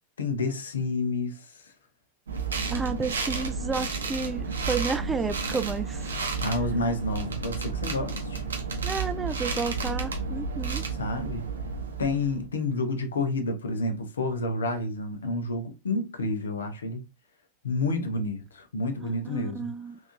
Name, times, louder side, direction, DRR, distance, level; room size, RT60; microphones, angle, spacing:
voice 1, 0.2-1.6 6.4-8.5 11.0-11.5 12.0-17.0 17.6-19.7, left 2 dB, 70° left, 0.7 m, -29 dB
sound 1, 2.3-12.5, right 4 dB, 70° right, 0.6 m, -31 dB
voice 2, 2.7-6.1 8.8-10.8 19.0-20.0, right 4 dB, 15° right, 0.3 m, -31 dB
3.5 x 2.6 x 2.5 m
figure-of-eight pair, 90°, 0 cm